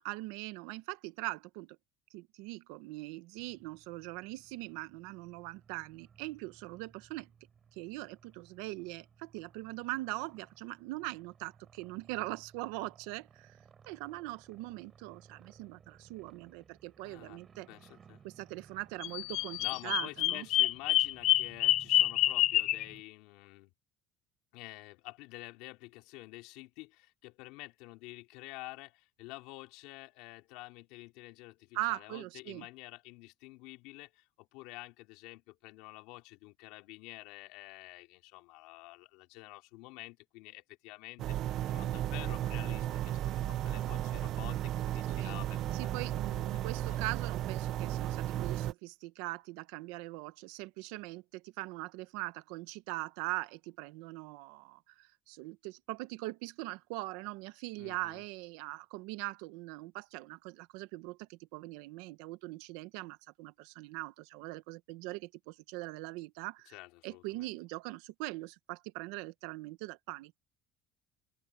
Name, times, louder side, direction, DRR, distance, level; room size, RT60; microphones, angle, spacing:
voice 1, 0.0-1.8 2.1-7.3 7.8-13.6 13.9-17.7 18.2-20.5 31.7-32.7 45.1-45.4 45.7-66.7 67.0-70.4, right 21 dB, 90° right, 1.0 m, -41 dB
sound 1, 3.4-23.0, right 7 dB, 25° right, 6.5 m, -61 dB
voice 2, 17.0-17.4 17.7-18.2 19.6-23.7 24.5-46.4 46.9-47.0 57.8-58.2 66.7-67.5, left 22 dB, 75° left, 3.9 m, -49 dB
Bird vocalization bird call bird song, 19.0-22.8, left 14 dB, 50° left, 0.8 m, -27 dB
sound 2, 41.2-48.7, right 12 dB, 45° right, 0.6 m, -34 dB
open air
cardioid pair, 170°, 0 cm